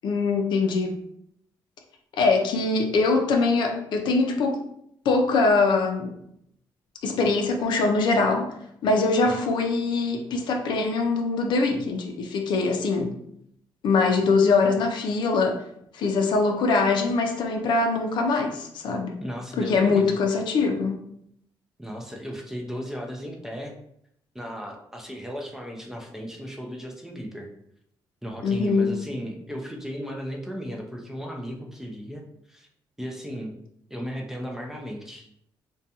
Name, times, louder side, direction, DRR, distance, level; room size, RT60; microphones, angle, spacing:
voice 1, 0.0-1.0 2.2-4.6 5.1-6.1 7.0-8.5 8.8-13.1 13.8-15.6 15.9-19.2 19.6-21.0 28.4-28.9, left 3 dB, 70° left, 4 dB, 0.4 m, -23 dB
voice 2, 19.2-20.2 21.8-23.8 24.3-27.5 28.2-32.2 32.5-32.7 33.0-33.5 33.9-35.3, equal, 5° right, 1 dB, 0.4 m, -35 dB
2.5 x 2.2 x 2.7 m, 0.74 s
cardioid pair, 120°, 8 cm